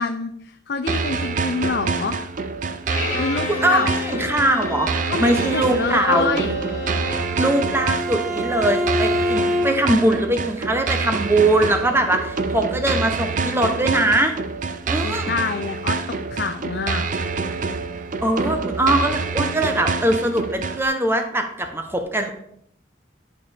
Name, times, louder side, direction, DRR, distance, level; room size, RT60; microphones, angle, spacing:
voice 1, 0.0-2.2 3.2-3.9 5.1-6.6 15.0-17.0, left 4 dB, 65° left, 5 dB, 0.5 m, -26 dB
sound 1, 0.9-20.9, right 4 dB, 45° right, 0.4 m, -27 dB
Bowed string instrument, 2.9-7.4, left 2 dB, 45° left, 1.3 m, -31 dB
voice 2, 3.5-6.4 7.3-14.3 14.9-15.3 18.2-22.3, right 1 dB, 15° right, 6 dB, 0.8 m, -21 dB
Bowed string instrument 2, 6.7-10.0, equal, 30° right, 2.3 m, -25 dB
11.0 x 4.4 x 3.4 m, 0.71 s
head